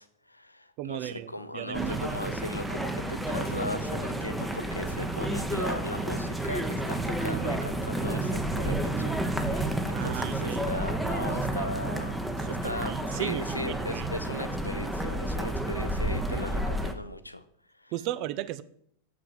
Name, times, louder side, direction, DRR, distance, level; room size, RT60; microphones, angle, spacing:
voice 1, 0.0-12.2 12.5-17.4 17.7-17.9, left 1 dB, 85° left, 0.6 m, -38 dB
voice 2, 0.8-2.0 8.7-8.8 9.9-10.7 12.4-14.1 17.9-18.6, right 14 dB, 40° right, 0.5 m, -36 dB
sound 1, 1.7-16.9, right 1 dB, 5° right, 0.8 m, -31 dB
7.0 x 6.1 x 6.1 m
figure-of-eight pair, 90°, 0 cm